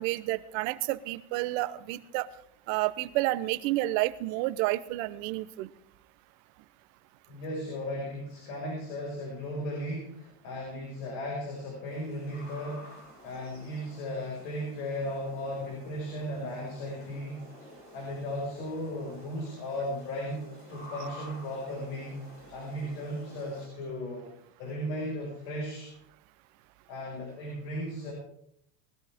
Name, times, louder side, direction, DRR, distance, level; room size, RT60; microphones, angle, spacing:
voice 1, 0.0-2.3 2.7-5.7, right 18 dB, 60° right, 13 dB, 0.9 m, -30 dB
voice 2, 7.3-13.0 13.2-17.4 17.9-22.2 22.5-24.3 24.6-25.9 26.9-28.1, equal, 65° left, -2 dB, 5.2 m, -36 dB
sound 1, 11.8-23.7, left 1 dB, 25° left, 4.7 m, -50 dB
20.0 x 12.5 x 3.5 m, 0.72 s
cardioid pair, 165°, 46 cm